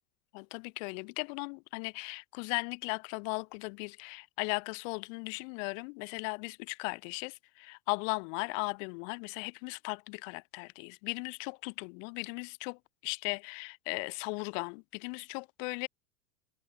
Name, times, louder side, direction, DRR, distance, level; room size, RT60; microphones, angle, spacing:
voice 1, 0.3-15.9, left 36 dB, 55° left, 2.4 m, -37 dB
supercardioid pair, 140°, 46 cm